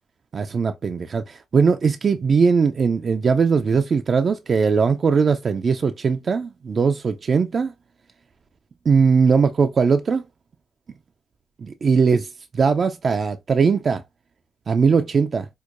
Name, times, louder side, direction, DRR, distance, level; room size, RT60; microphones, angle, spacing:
voice 1, 0.3-7.7 8.9-10.2 11.6-14.0 14.7-15.5, right 5 dB, 50° right, 0.3 m, -20 dB
4.6 x 2.1 x 2.4 m
cardioid pair, 70°, 0 cm